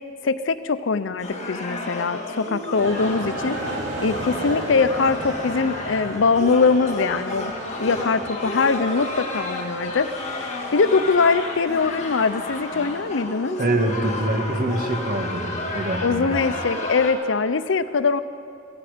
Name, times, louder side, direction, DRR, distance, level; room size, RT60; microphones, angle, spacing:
voice 1, 0.2-3.6 4.0-7.5 7.8-10.1 10.4-10.5 10.7-13.6 16.0-18.2, left 4 dB, 85° left, 13 dB, 0.6 m, -22 dB
sound 1, 1.2-17.1, left 2 dB, 40° left, 1.9 m, -32 dB
sound 2, 2.7-13.1, right 1 dB, 75° right, 2.9 m, -36 dB
voice 2, 13.6-16.4, right 1 dB, 50° right, 3 dB, 1.8 m, -25 dB
17.0 x 15.5 x 5.1 m, 2.4 s
head